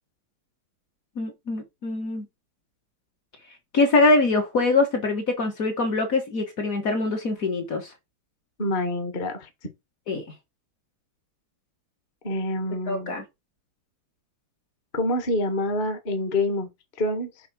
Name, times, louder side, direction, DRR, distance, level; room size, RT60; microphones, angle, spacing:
voice 1, 1.2-2.2 3.7-7.9 10.1-10.2 12.9-13.2, left 3 dB, 50° left, 1.3 m, -23 dB
voice 2, 8.6-9.5 12.2-13.1 14.9-16.7 17.0-17.3, left 1 dB, 30° left, 1.0 m, -26 dB
7.0 x 3.3 x 5.8 m
omnidirectional pair, 2.3 m